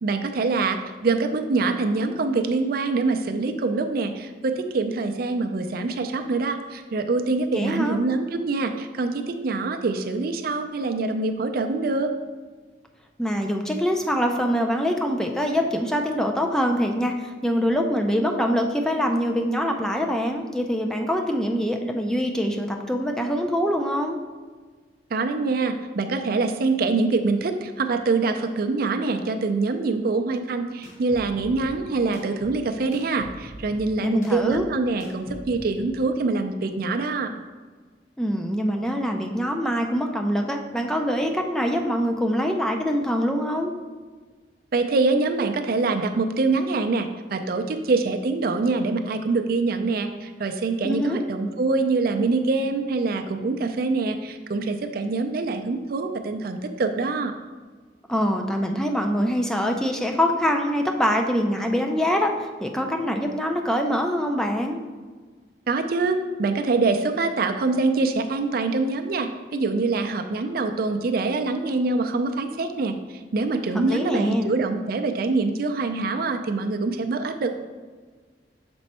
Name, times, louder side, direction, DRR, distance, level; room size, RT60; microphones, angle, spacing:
voice 1, 0.0-12.1 25.1-37.3 44.7-57.3 65.7-77.5, right 3 dB, 55° right, 6 dB, 0.4 m, -25 dB
voice 2, 7.5-8.0 13.2-24.2 34.0-34.7 38.2-43.7 50.8-51.2 58.1-64.8 73.7-74.5, equal, 5° left, 3 dB, 0.4 m, -24 dB
sound 1, 30.8-35.9, right 1 dB, 45° left, 1.4 m, -43 dB
6.1 x 4.3 x 4.2 m, 1.4 s
head